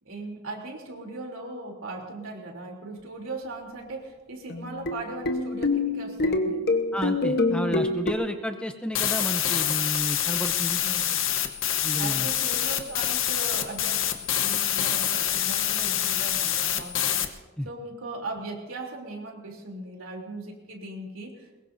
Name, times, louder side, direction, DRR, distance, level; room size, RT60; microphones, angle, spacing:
voice 1, 0.0-6.6 10.8-11.2 12.0-17.3 17.6-21.6, right 2 dB, 70° right, 1 dB, 3.3 m, -38 dB
sound 1, 4.5-8.1, left 2 dB, 50° left, 1.1 m, -26 dB
voice 2, 6.9-10.8 11.8-12.3 17.6-17.7, equal, 5° left, 6 dB, 0.6 m, -31 dB
sound 2, 8.9-17.3, left 11 dB, 65° left, 1.0 m, -26 dB
22.5 x 21.0 x 2.7 m, 1.2 s
head